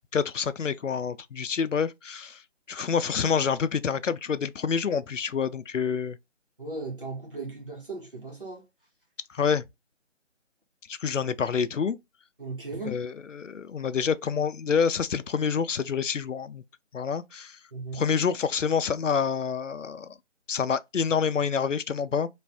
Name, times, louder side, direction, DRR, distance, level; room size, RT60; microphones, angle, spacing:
voice 1, 0.1-2.4 2.7-6.2 9.3-9.6 10.9-12.0 12.9-16.6 16.9-17.6 17.9-20.1 20.5-22.3, left 6 dB, 80° left, 0.5 m, -27 dB
voice 2, 6.6-8.6 12.4-13.0 17.7-18.0, right 3 dB, 45° right, 1.1 m, -37 dB
3.1 x 2.6 x 3.4 m
figure-of-eight pair, 170°, 37 cm